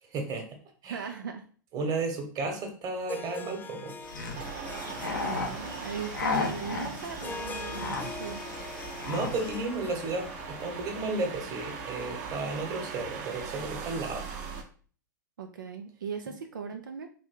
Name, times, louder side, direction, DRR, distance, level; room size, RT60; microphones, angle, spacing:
voice 1, 0.0-1.1 1.7-4.0 9.0-14.3, right 3 dB, 35° right, 4 dB, 1.1 m, -33 dB
voice 2, 0.9-1.4 5.2-8.4 15.4-17.1, right 6 dB, 85° right, 4 dB, 0.4 m, -38 dB
Harp, 2.9-12.0, left 3 dB, 20° left, 0.4 m, -43 dB
sound 1, 4.0-9.6, left 3 dB, 85° left, 0.9 m, -35 dB
sound 2, 4.3-14.6, right 5 dB, 55° right, 0.8 m, -40 dB
3.2 x 2.6 x 3.7 m, 0.42 s
hypercardioid pair, 100°, 10 cm